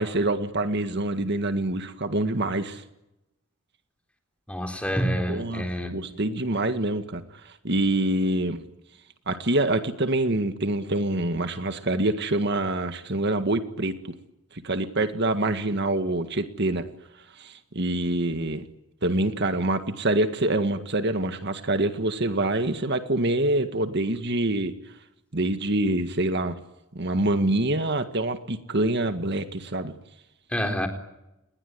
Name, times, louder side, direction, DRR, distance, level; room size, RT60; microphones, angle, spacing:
voice 1, 0.0-2.8 5.3-5.6 5.9-8.6 9.3-13.9 14.5-16.9 17.4-18.6 19.0-24.7 25.3-26.6 27.0-29.9, right 2 dB, 55° right, 8 dB, 1.9 m, -26 dB
voice 2, 4.5-6.0 30.5-30.9, equal, 5° left, 4 dB, 4.0 m, -27 dB
28.5 x 21.0 x 9.7 m, 0.90 s
head